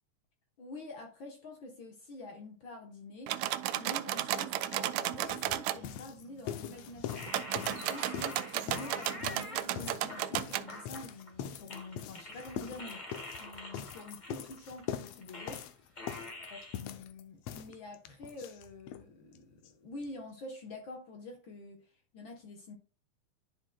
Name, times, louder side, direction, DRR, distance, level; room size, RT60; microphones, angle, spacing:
voice 1, 0.6-7.3 7.6-13.1 13.4-15.7 16.4-21.9 22.1-22.8, left 2 dB, 60° left, 1.4 m, -47 dB
sound 1, 3.3-5.8 7.3-10.7, right 13 dB, 80° right, 1.8 m, -34 dB
sound 2, 4.3-4.4 4.7-19.1 19.3-19.4 19.6-19.7 20.0-20.1, left 9 dB, 75° left, 1.7 m, -43 dB
sound 3, 7.1-9.6 10.1-11.4 11.7-15.7 16.0-16.8, left 1 dB, 35° left, 0.7 m, -46 dB
11.5 x 5.1 x 2.2 m
omnidirectional pair, 3.4 m